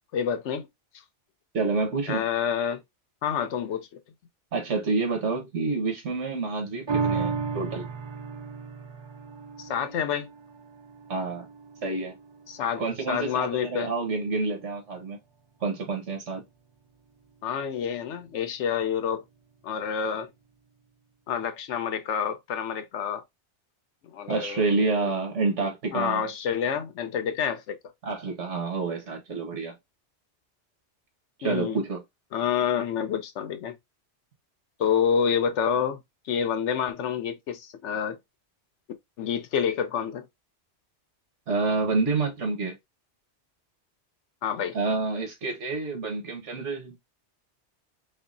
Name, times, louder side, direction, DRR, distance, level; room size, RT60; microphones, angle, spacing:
voice 1, 0.1-0.7 2.1-2.8 3.2-3.9 9.6-10.3 12.5-13.9 17.4-19.2 19.6-20.3 21.3-23.2 24.0-25.1 25.9-27.8 31.4-31.8 32.3-33.7 34.8-36.0 36.3-38.2 39.2-40.3 44.4-44.8, left 8 dB, 80° left, 1.0 m, -28 dB
voice 2, 1.5-2.2 4.5-7.9 11.1-11.5 11.8-12.2 12.8-15.2 15.6-16.4 24.3-26.3 28.0-29.7 31.4-32.0 41.5-42.8 44.7-47.0, right 3 dB, 80° right, 1.6 m, -28 dB
sound 1, 6.9-13.5 14.0-14.1, right 5 dB, 40° right, 0.4 m, -34 dB
5.3 x 2.0 x 2.5 m
omnidirectional pair, 1.2 m